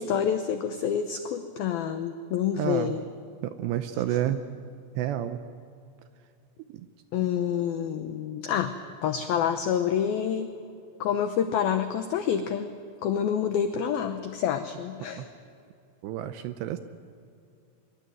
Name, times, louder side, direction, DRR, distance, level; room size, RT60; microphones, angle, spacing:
voice 1, 0.0-3.0 7.1-8.7 9.0-10.5 11.0-12.7 13.0-15.3, left 8 dB, 85° left, 8 dB, 2.1 m, -27 dB
voice 2, 2.6-2.9 3.4-4.4 5.0-5.4 6.7-6.9 7.2-7.3 15.1-15.3 16.0-16.8, right 12 dB, 80° right, 10 dB, 2.6 m, -30 dB
24.0 x 22.5 x 9.2 m, 2.4 s
omnidirectional pair, 5.6 m